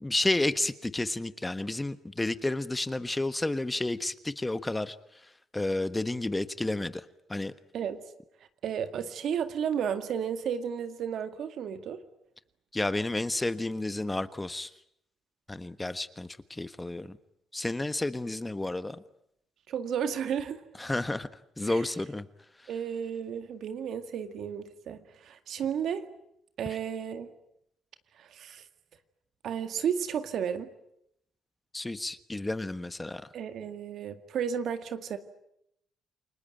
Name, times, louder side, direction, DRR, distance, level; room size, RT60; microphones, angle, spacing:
voice 1, 0.0-5.0 5.5-7.0 7.3-7.5 12.7-14.7 15.5-17.2 17.5-19.0 20.8-21.3 21.6-22.3 31.7-33.3, left 2 dB, 15° left, 13 dB, 1.3 m, -31 dB
voice 2, 8.6-12.0 19.7-20.6 21.7-21.8 22.7-26.1 26.6-27.3 28.2-28.6 29.4-30.7 33.3-35.2, right 8 dB, 70° right, 9 dB, 2.0 m, -33 dB
29.5 x 20.5 x 9.2 m, 0.78 s
cardioid pair, 90°, 0 cm